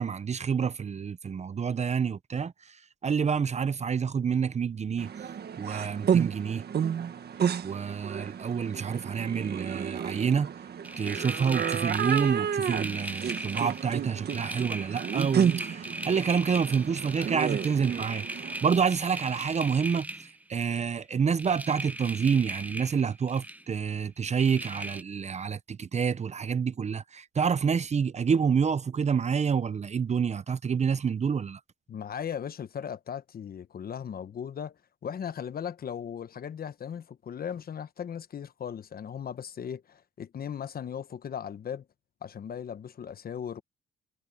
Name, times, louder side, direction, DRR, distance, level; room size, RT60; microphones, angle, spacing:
voice 1, 0.0-5.1 5.6-6.7 7.6-10.5 11.0-18.3 18.6-31.6, right 6 dB, 35° right, 0.7 m, -28 dB
sound 1, 5.0-18.7, right 8 dB, 55° right, 1.7 m, -31 dB
sound 2, 10.8-20.9 21.4-23.7 24.4-25.0, right 1 dB, 10° right, 0.9 m, -39 dB
voice 2, 31.9-41.8 42.2-43.6, left 8 dB, 50° left, 1.1 m, -37 dB
cardioid pair, 90°, 20 cm